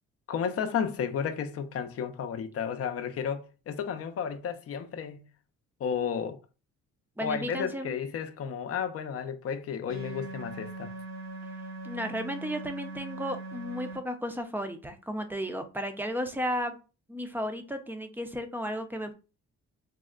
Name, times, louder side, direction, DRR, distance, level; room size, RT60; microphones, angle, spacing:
voice 1, 0.3-5.3 5.8-6.4 7.2-10.9, left 7 dB, 50° left, 0.5 m, -32 dB
voice 2, 7.2-8.0 11.8-16.8 17.1-19.1, equal, 5° right, 0.5 m, -34 dB
sound 1, 9.9-14.0, right 2 dB, 80° right, 1.4 m, -40 dB
3.5 x 2.1 x 2.3 m
cardioid pair, 90°, 30 cm